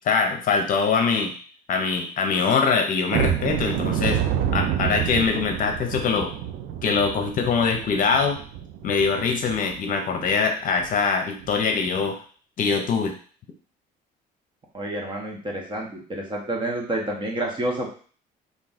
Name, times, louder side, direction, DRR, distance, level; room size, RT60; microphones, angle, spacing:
voice 1, 0.0-1.3 1.7-4.2 4.5-6.3 6.8-8.4 8.8-12.2 12.6-13.1, left 5 dB, 55° left, 4 dB, 0.8 m, -23 dB
sound 1, 3.1-9.8 10.2-10.3 10.8-10.9 11.4-11.6, right 9 dB, 75° right, 0.5 m, -28 dB
voice 2, 14.7-17.9, right 1 dB, 30° right, 0 dB, 1.2 m, -29 dB
3.9 x 2.7 x 3.6 m, 0.42 s
cardioid pair, 110°, 17 cm